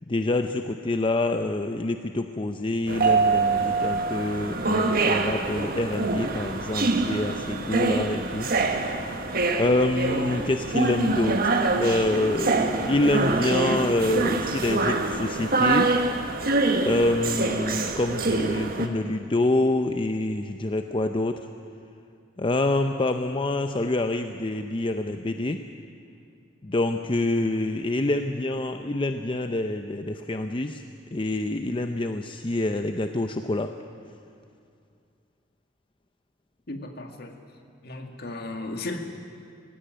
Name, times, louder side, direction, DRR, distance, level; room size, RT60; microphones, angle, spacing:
voice 1, 0.1-8.5 8.8-9.3 9.6-15.9 16.8-21.5 22.4-25.6 26.6-30.8 31.1-33.7, left 2 dB, 25° left, 7 dB, 0.6 m, -26 dB
sound 1, 2.9-18.9, right 3 dB, 50° right, 1.5 m, -25 dB
voice 2, 36.7-37.3 37.8-39.0, left 2 dB, 55° left, 4 dB, 1.9 m, -35 dB
18.0 x 17.0 x 9.1 m, 2.4 s
head